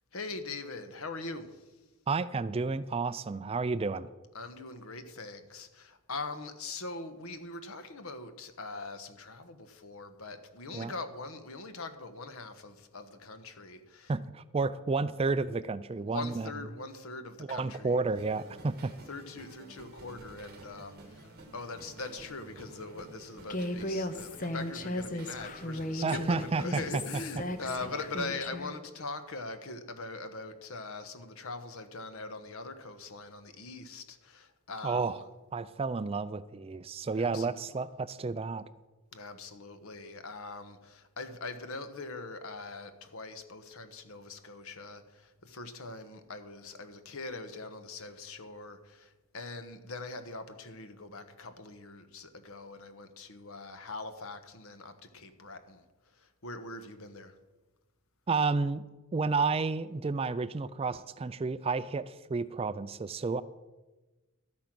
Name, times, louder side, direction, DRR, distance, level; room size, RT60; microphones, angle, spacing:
voice 1, 0.1-1.8 4.3-14.1 16.0-18.0 19.1-35.2 37.2-37.7 39.1-55.8 56.1-57.3, left 3 dB, 70° left, 1.2 m, -42 dB
voice 2, 2.1-4.1 10.7-10.9 14.1-16.5 17.5-18.9 26.0-26.8 34.8-35.2 35.5-38.6 58.3-58.8 59.1-63.4, right 4 dB, 25° right, 0.3 m, -31 dB
sound 1, 18.1-28.3, right 2 dB, 45° right, 2.0 m, -51 dB
Human voice, 23.5-28.7, left 1 dB, 35° left, 0.7 m, -36 dB
13.0 x 8.8 x 6.1 m
head